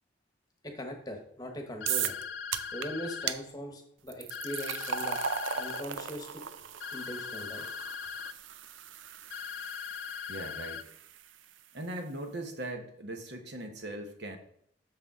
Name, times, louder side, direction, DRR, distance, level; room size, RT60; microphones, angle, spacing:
voice 1, 0.6-2.1 2.7-5.2 5.6-6.3 6.9-7.6, equal, 20° left, 4 dB, 1.1 m, -40 dB
sound 1, 1.8-3.3 4.3-5.8 6.8-8.3 9.3-10.8, left 7 dB, 65° left, 0.4 m, -40 dB
sound 2, 1.9-2.2 2.5-2.9 3.3-3.4 4.1-11.2, right 8 dB, 90° right, 0.5 m, -37 dB
voice 2, 10.3-10.8 11.7-14.4, right 1 dB, 60° right, 4 dB, 1.1 m, -39 dB
6.8 x 6.6 x 3.7 m, 0.69 s
head